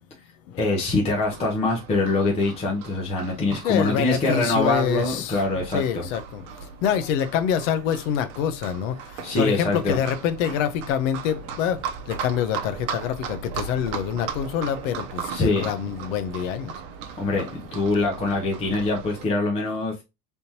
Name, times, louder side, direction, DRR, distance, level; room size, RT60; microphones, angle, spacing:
voice 1, 0.6-6.1 9.2-10.0 15.3-15.7 17.2-20.0, left 2 dB, 15° left, 0.7 m, -24 dB
Livestock farm animals working animals, 1.1-19.2, right 6 dB, 55° right, 0.8 m, -37 dB
voice 2, 3.6-5.4 5.7-16.7, left 9 dB, 60° left, 0.9 m, -26 dB
4.2 x 3.6 x 2.8 m
supercardioid pair, 170°, 43 cm